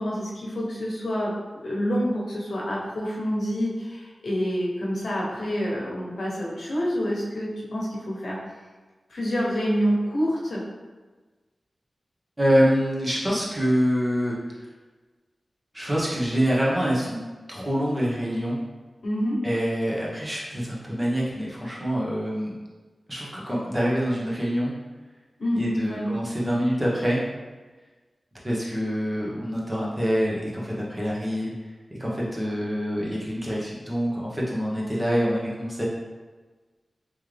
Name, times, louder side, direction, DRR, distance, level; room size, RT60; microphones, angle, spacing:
voice 1, 0.0-1.3 1.6-8.4 9.1-10.6 19.0-19.4 25.4-26.1, equal, 80° left, -5 dB, 1.0 m, -27 dB
voice 2, 12.4-14.4 15.7-17.2 17.5-18.6 19.4-22.5 23.1-24.7 25.6-27.2 28.4-31.5 32.0-35.9, equal, 20° right, -5 dB, 1.1 m, -25 dB
3.7 x 3.1 x 3.3 m, 1.3 s
wide cardioid pair, 75°, 0 cm